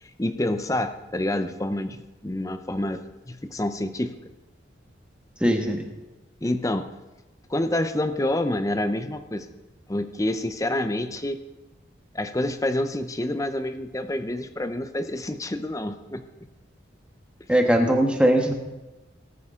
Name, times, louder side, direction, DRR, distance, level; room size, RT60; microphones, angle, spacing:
voice 1, 0.0-3.0 3.3-4.2 6.4-6.9 7.5-9.5 9.9-11.4 12.1-16.2, left 1 dB, 15° left, 10 dB, 0.6 m, -27 dB
voice 2, 5.4-5.9 17.5-18.5, right 1 dB, 5° right, 3 dB, 1.3 m, -20 dB
18.0 x 9.5 x 3.7 m, 1.1 s
head